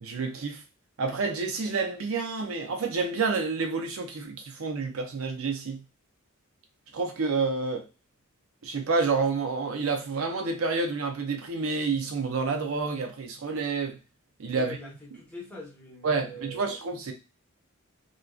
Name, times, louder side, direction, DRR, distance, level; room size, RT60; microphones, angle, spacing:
voice 1, 0.0-0.6 1.0-5.8 6.9-7.9 8.6-14.0 14.4-14.8 16.0-17.1, right 4 dB, 75° right, 0.5 m, -29 dB
voice 2, 14.5-16.7, equal, 5° left, 1.0 m, -42 dB
2.5 x 2.2 x 2.3 m
head